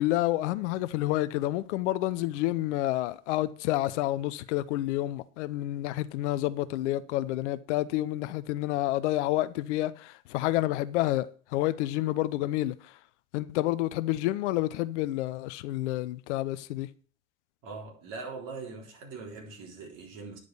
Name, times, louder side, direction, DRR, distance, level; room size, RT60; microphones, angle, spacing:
voice 1, 0.0-11.3 11.5-12.7 13.3-16.9, left 16 dB, 60° left, 0.7 m, -29 dB
voice 2, 17.6-20.4, right 4 dB, 50° right, 3.8 m, -41 dB
9.8 x 5.1 x 6.6 m
hypercardioid pair, 85°, 40 cm